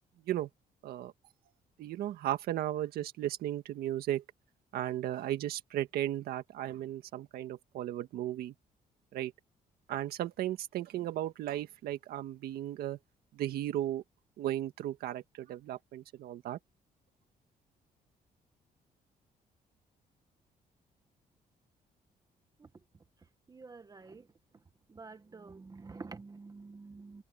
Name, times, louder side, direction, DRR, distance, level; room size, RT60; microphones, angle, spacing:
voice 1, 1.8-4.2 4.7-8.5 9.1-9.3 9.9-13.0 13.3-14.0 14.4-16.6, right 13 dB, 90° right, 1.7 m, -35 dB
voice 2, 23.2-24.3 24.9-27.2, right 4 dB, 25° right, 1.3 m, -49 dB
cardioid pair, 125°, 16 cm